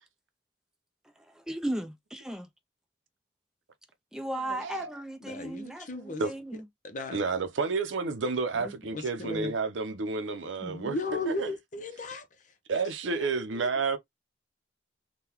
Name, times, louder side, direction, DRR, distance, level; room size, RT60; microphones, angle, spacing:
voice 1, 1.5-2.5 4.1-6.6, right 1 dB, 5° right, 0.5 m, -36 dB
voice 2, 4.6-4.9 6.2-6.3 7.1-11.0 11.3-11.5 12.7-14.0, right 4 dB, 80° right, 0.6 m, -30 dB
voice 3, 5.2-6.2 6.5-7.2 8.5-9.5 10.6-12.8 13.1-13.7, left 2 dB, 40° left, 0.7 m, -37 dB
3.7 x 2.2 x 2.9 m
head